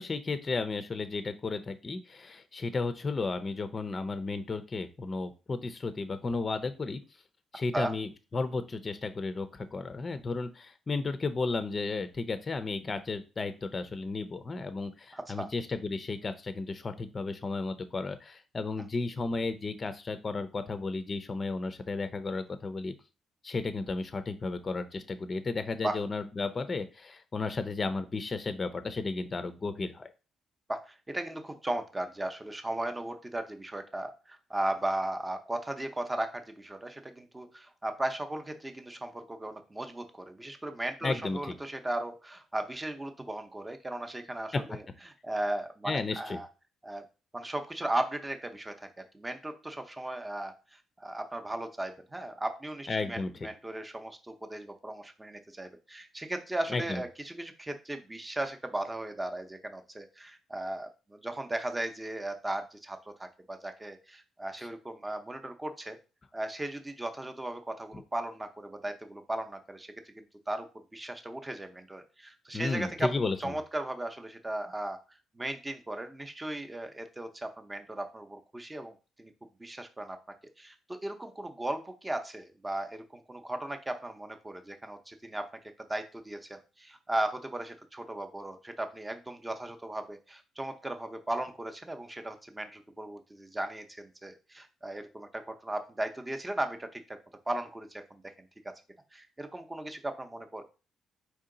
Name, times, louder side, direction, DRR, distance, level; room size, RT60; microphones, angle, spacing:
voice 1, 0.0-7.0 7.5-22.9 23.4-30.1 41.0-41.4 45.9-46.4 52.9-53.3 56.7-57.0 72.5-73.5, left 3 dB, 35° left, 10 dB, 0.5 m, -33 dB
voice 2, 15.1-15.5 18.8-18.9 25.8-26.0 30.7-44.8 45.2-46.5 46.8-47.0 47.3-66.0 66.3-73.1 73.4-75.0 75.3-79.3 79.6-80.2 80.6-85.5 85.9-97.2 97.5-98.7 99.1-100.6, right 1 dB, 15° right, 7 dB, 0.7 m, -36 dB
4.6 x 2.8 x 3.8 m, 0.32 s
cardioid pair, 90°, 0 cm